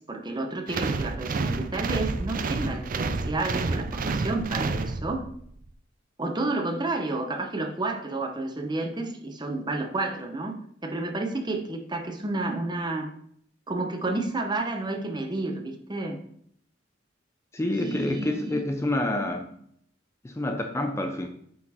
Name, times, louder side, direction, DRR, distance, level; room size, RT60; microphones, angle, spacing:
voice 1, 0.0-5.2 6.2-10.6 10.8-13.1 13.7-16.2 17.8-18.6 19.2-19.4, right 2 dB, 25° right, 4 dB, 0.8 m, -30 dB
sound 1, 0.7-5.4, right 3 dB, 45° right, 0.4 m, -29 dB
voice 2, 17.5-19.5 20.2-21.3, left 1 dB, 15° left, 5 dB, 0.5 m, -28 dB
8.5 x 4.4 x 4.2 m, 0.66 s
head